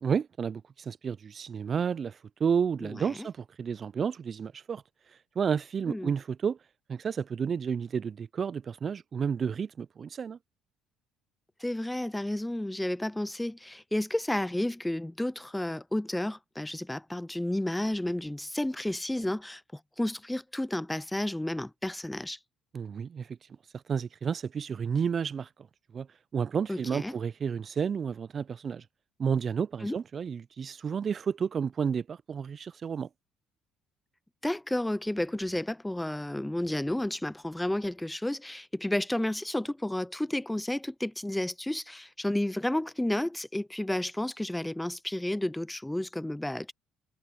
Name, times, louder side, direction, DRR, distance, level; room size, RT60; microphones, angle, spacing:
voice 1, 0.0-4.8 5.4-6.6 6.9-10.4 22.7-23.4 23.9-25.5 25.9-26.1 26.3-28.8 29.2-33.1, right 6 dB, 45° right, 0.6 m, -31 dB
voice 2, 2.8-3.3 5.9-6.1 11.6-22.4 26.7-27.1 29.8-29.9 34.4-46.7, left 1 dB, 10° left, 0.5 m, -32 dB
hypercardioid pair, 55°, 0 cm